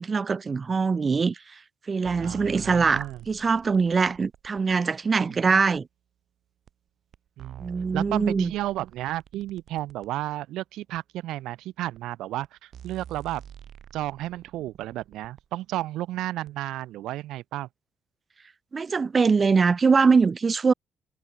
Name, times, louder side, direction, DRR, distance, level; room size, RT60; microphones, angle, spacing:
voice 1, 0.0-1.4 1.9-5.9 7.6-8.5 18.7-20.7, right 5 dB, 35° right, 0.6 m, -22 dB
sound 1, 2.1-4.8 5.8-5.9 6.7-6.8 7.1-10.1 11.0-11.1 12.0-12.1 12.4-12.5 12.7-15.5 16.5-16.6, right 10 dB, 65° right, 1.6 m, -47 dB
voice 2, 2.2-3.2 5.2-5.3 7.4-13.4 13.9-17.7, right 15 dB, 90° right, 0.4 m, -32 dB
cardioid pair, 90°, 0 cm